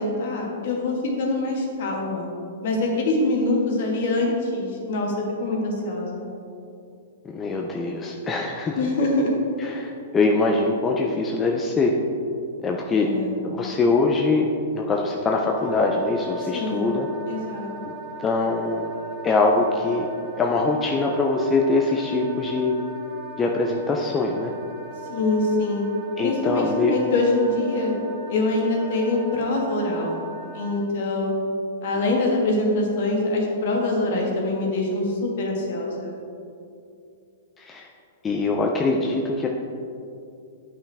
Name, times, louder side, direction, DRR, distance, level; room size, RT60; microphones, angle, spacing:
voice 1, 0.0-2.3 2.6-5.1 5.4-6.3 8.7-9.4 13.0-13.4 16.5-16.9 17.3-17.7 25.1-25.9 26.2-27.9 28.3-30.2 30.5-31.3 31.8-36.1, left 2 dB, 55° left, -1 dB, 1.6 m, -24 dB
voice 2, 7.2-8.8 9.6-11.9 12.6-13.1 13.4-17.1 17.8-17.9 18.2-18.9 19.2-20.1 20.4-22.7 23.4-24.5 26.2-26.9 37.6-37.9 38.2-39.5, left 3 dB, 15° left, 0 dB, 0.4 m, -23 dB
Wind instrument woodwind instrument, 15.5-30.8, right 2 dB, 35° right, 0.8 m, -38 dB
8.8 x 5.6 x 3.4 m, 2.6 s
hypercardioid pair, 160°, 0 cm